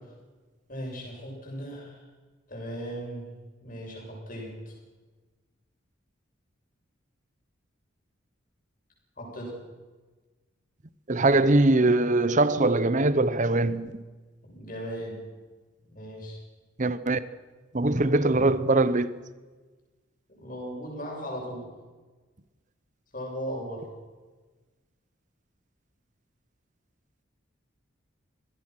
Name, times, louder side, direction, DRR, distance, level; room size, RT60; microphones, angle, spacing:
voice 1, 0.7-2.0 2.5-3.3 3.6-4.8 9.2-9.6 14.4-15.2 15.9-16.4 20.3-21.7 23.1-23.9, equal, 45° left, 7.0 m, -37 dB
voice 2, 11.1-14.0 16.8-17.2 17.7-19.1, right 2 dB, 40° right, 0.9 m, -22 dB
25.0 x 17.5 x 6.1 m
head